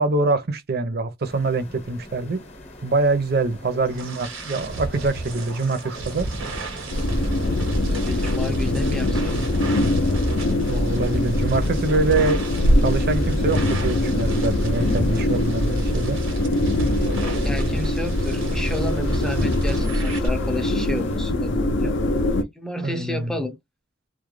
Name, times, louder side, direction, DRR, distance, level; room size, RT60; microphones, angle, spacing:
voice 1, 0.0-2.4 2.8-6.3 10.7-12.4 12.8-16.2 22.8-23.3, right 3 dB, 55° right, 0.6 m, -24 dB
sound 1, 1.3-21.2, left 1 dB, 35° left, 0.8 m, -42 dB
sound 2, 3.3-20.3, right 1 dB, 90° right, 1.0 m, -30 dB
sound 3, 6.9-22.4, left 1 dB, 65° left, 0.5 m, -23 dB
voice 2, 7.9-9.3 17.2-21.9 22.4-23.6, left 1 dB, 5° left, 0.5 m, -31 dB
2.3 x 2.1 x 3.1 m
head